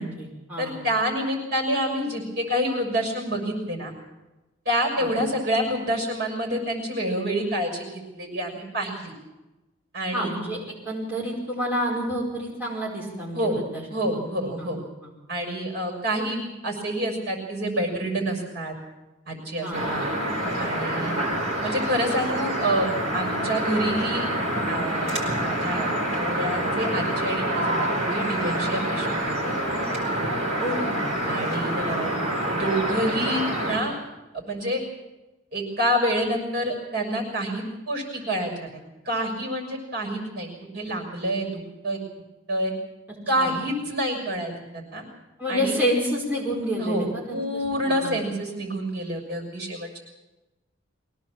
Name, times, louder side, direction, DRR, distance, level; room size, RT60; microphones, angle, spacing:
voice 1, 0.0-0.8 5.0-5.1 10.1-14.7 19.6-19.8 30.6-31.0 31.6-32.0 43.4-43.6 45.4-48.2, equal, 10° right, -7 dB, 5.0 m, -29 dB
voice 2, 0.6-3.9 4.6-9.1 9.9-10.3 13.3-13.6 13.9-14.8 15.3-18.7 19.3-20.1 20.5-21.2 21.6-24.2 24.7-25.1 25.4-29.3 31.3-32.2 32.5-33.9 34.3-34.8 35.5-38.7 39.0-40.5 40.7-41.5 41.8-42.0 42.5-42.7 43.3-45.0 45.5-45.8 46.8-50.0, equal, 50° right, 1 dB, 6.5 m, -27 dB
sound 1, 19.7-33.8, right 1 dB, 35° right, 5.0 m, -27 dB
23.0 x 18.0 x 7.4 m, 1.1 s
head